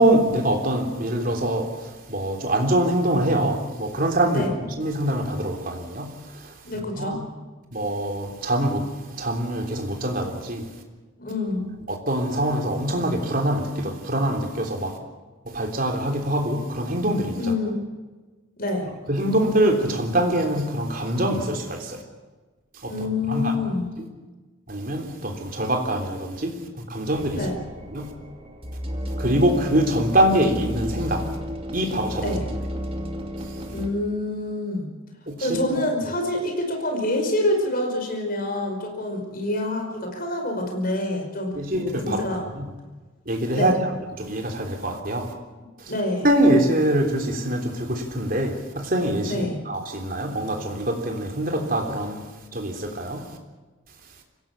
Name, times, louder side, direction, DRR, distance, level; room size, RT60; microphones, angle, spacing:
voice 1, 0.0-4.5 4.8-6.5 7.0-7.2 7.7-10.6 11.9-15.0 15.5-17.4 19.1-22.0 22.8-23.5 24.7-26.6 26.9-27.5 27.9-28.1 29.2-31.3 31.7-32.4 35.3-35.8 41.5-42.2 42.5-42.7 43.2-43.7 44.2-45.3 46.2-52.2 52.5-53.3, right 1 dB, 45° right, 3.4 m, -24 dB
voice 2, 6.6-7.2 11.2-11.7 17.4-17.8 18.6-18.9 22.9-23.9 27.3-27.6 32.2-32.4 33.7-34.9 35.4-41.6 42.0-42.4 43.5-43.8 45.6-46.3 49.2-49.6, left 1 dB, 45° left, 5.3 m, -26 dB
sound 1, 27.1-33.9, equal, 30° right, 2.6 m, -33 dB
25.0 x 17.0 x 7.0 m
head